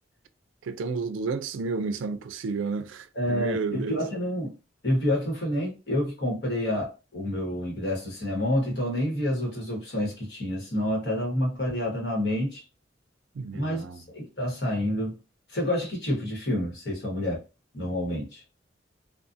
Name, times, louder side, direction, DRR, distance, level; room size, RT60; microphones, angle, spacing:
voice 1, 0.6-4.0 13.4-14.0, right 4 dB, 90° right, 0.4 m, -31 dB
voice 2, 3.1-4.5 4.8-12.6 13.5-15.2 15.5-17.4 17.7-18.4, left 1 dB, 60° left, 1.2 m, -28 dB
2.5 x 2.3 x 2.5 m
head